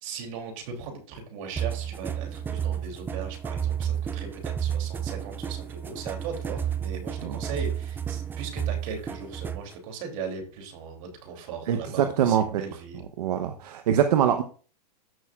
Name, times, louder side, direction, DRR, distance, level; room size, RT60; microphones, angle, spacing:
voice 1, 0.0-13.0, right 5 dB, 55° right, 3 dB, 3.0 m, -38 dB
sound 1, 1.6-9.8, right 9 dB, 10° right, 0.4 m, -31 dB
voice 2, 11.7-12.6 13.2-14.4, right 9 dB, 75° right, 7 dB, 0.9 m, -23 dB
14.5 x 6.5 x 2.4 m, 0.40 s
hypercardioid pair, 130°, 20 cm